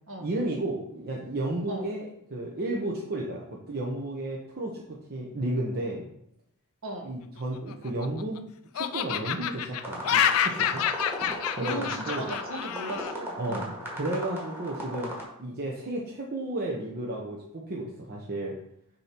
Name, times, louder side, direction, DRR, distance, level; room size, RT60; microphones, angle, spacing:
voice 1, 0.2-6.1 7.0-8.4 8.7-10.8 11.5-12.3 13.4-18.5, right 1 dB, 45° right, -3 dB, 0.9 m, -33 dB
Laughter, 7.5-8.4 8.8-13.1, left 9 dB, 65° left, 0.4 m, -28 dB
sound 1, 9.8-15.2, equal, 10° right, 1.6 m, -37 dB
voice 2, 11.6-13.7, equal, 60° right, 1 dB, 1.4 m, -37 dB
6.7 x 2.9 x 5.8 m, 0.74 s
head